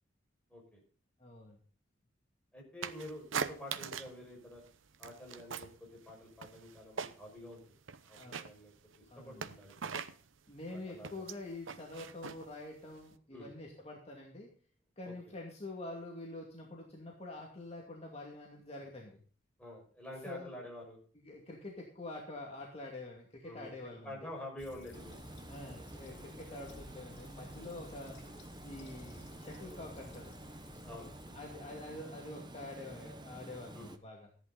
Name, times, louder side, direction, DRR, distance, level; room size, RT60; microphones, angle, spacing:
voice 1, 0.5-0.8 2.5-4.6 5.0-7.6 8.0-10.0 10.7-11.3 13.3-13.5 15.0-15.1 19.6-21.0 23.4-23.7 24.0-25.1 26.5-26.6 27.8-28.0 30.8-31.1 33.7-33.9, left 1 dB, 5° left, -2 dB, 5.9 m, -48 dB
voice 2, 1.2-1.6 8.2-8.4 9.1-9.5 10.5-14.5 15.0-19.2 20.2-20.5 21.1-24.4 25.5-28.2 28.6-30.3 31.3-34.3, left 2 dB, 35° left, -1 dB, 2.5 m, -46 dB
sound 1, 2.8-4.2 4.5-5.8 6.1-7.4 7.7-13.1, right 6 dB, 75° right, 0.9 m, -42 dB
Fill (with liquid), 24.6-32.2, left 1 dB, 65° left, 3.5 m, -55 dB
Water, 24.9-34.0, right 1 dB, 25° right, 1.1 m, -50 dB
14.5 x 11.0 x 4.0 m, 0.43 s
head